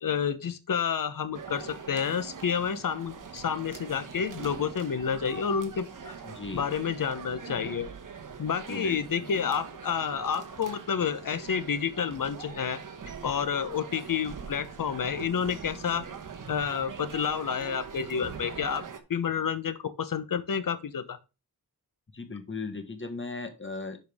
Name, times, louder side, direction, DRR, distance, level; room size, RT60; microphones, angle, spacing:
voice 1, 0.0-6.1 6.5-7.9 8.4-12.8 13.2-16.1 16.5-21.2, left 7 dB, 55° left, 0.9 m, -30 dB
sound 1, 1.3-19.0, right 6 dB, 55° right, 1.1 m, -43 dB
voice 2, 6.2-6.7 8.7-9.5 22.1-24.0, left 3 dB, 30° left, 1.4 m, -37 dB
10.5 x 4.7 x 3.5 m
wide cardioid pair, 95°, 39 cm